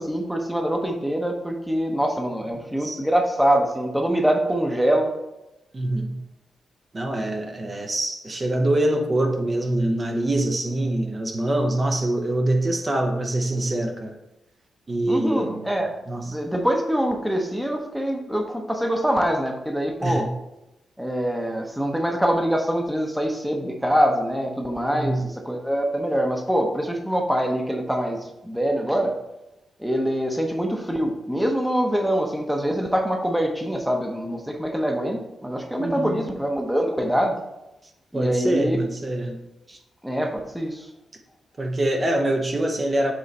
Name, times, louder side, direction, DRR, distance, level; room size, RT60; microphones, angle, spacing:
voice 1, 0.0-5.1 15.1-16.0 16.3-20.3 21.0-29.1 29.8-37.4 38.1-38.8 40.0-40.9, equal, 5° right, 3 dB, 0.8 m, -24 dB
voice 2, 5.7-6.2 6.9-14.1 14.9-15.6 16.1-16.4 20.0-20.3 24.9-25.2 35.8-36.2 38.1-39.4 39.7-39.8 41.6-43.1, right 1 dB, 35° right, 3 dB, 0.8 m, -24 dB
7.6 x 3.2 x 4.0 m, 0.93 s
cardioid pair, 80°, 0 cm